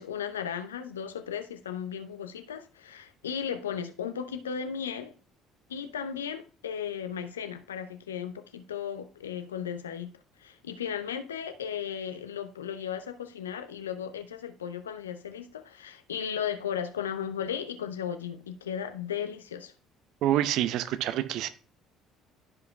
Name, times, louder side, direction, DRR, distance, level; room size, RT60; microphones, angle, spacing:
voice 1, 0.0-5.1 5.7-10.1 10.4-19.7, left 8 dB, 85° left, 0.7 m, -35 dB
voice 2, 20.2-21.5, right 12 dB, 60° right, 0.8 m, -27 dB
14.0 x 4.9 x 2.3 m
hypercardioid pair, 55°, 0 cm